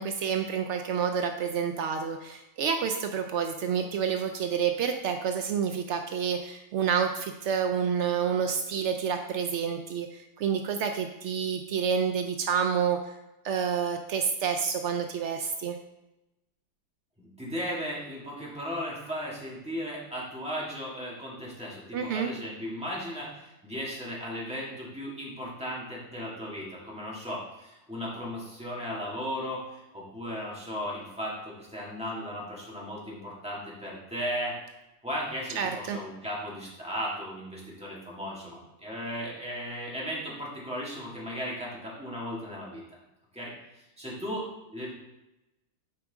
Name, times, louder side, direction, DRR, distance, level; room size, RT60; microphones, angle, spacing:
voice 1, 0.0-13.1 13.4-15.8 21.9-22.3 35.6-36.0, right 7 dB, 85° right, 5 dB, 0.6 m, -29 dB
voice 2, 17.2-34.6 35.0-42.8 43.3-44.9, equal, 5° right, -5 dB, 1.8 m, -36 dB
8.0 x 4.8 x 3.5 m, 0.98 s
omnidirectional pair, 1.8 m